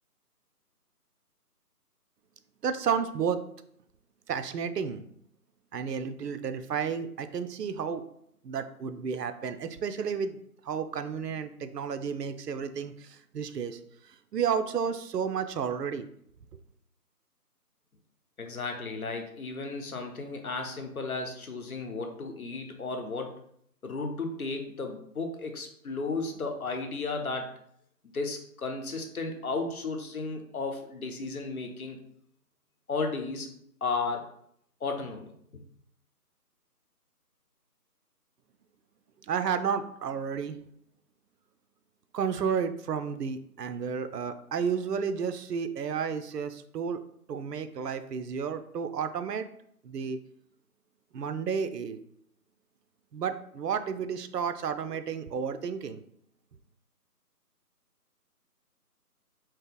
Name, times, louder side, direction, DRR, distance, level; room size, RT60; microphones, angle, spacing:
voice 1, 2.6-3.4 4.3-5.0 5.7-8.0 8.4-10.4 10.6-13.8 14.3-16.1 39.3-40.6 42.1-47.0 47.3-49.5 49.8-50.2 51.1-52.0 53.1-56.0, right 6 dB, 80° right, 10 dB, 0.5 m, -31 dB
voice 2, 18.4-23.4 23.8-27.5 28.1-32.0 32.9-33.5 33.8-34.3 34.8-35.3, left 3 dB, 65° left, 4 dB, 0.8 m, -34 dB
2.8 x 2.8 x 3.8 m, 0.70 s
figure-of-eight pair, 175°, 47 cm